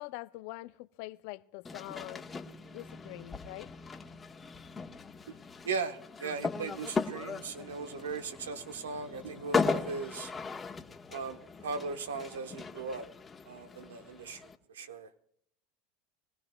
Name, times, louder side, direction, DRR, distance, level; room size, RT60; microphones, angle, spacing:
voice 1, 0.0-2.3 2.7-3.7, left 20 dB, 65° left, 0.6 m, -44 dB
sound 1, 1.7-14.6, left 4 dB, 25° left, 1.4 m, -38 dB
voice 2, 5.6-10.3 11.1-13.1 13.4-14.4 14.7-15.1, right 4 dB, 90° right, 1.2 m, -38 dB
23.5 x 17.0 x 2.3 m
hypercardioid pair, 90°, 0 cm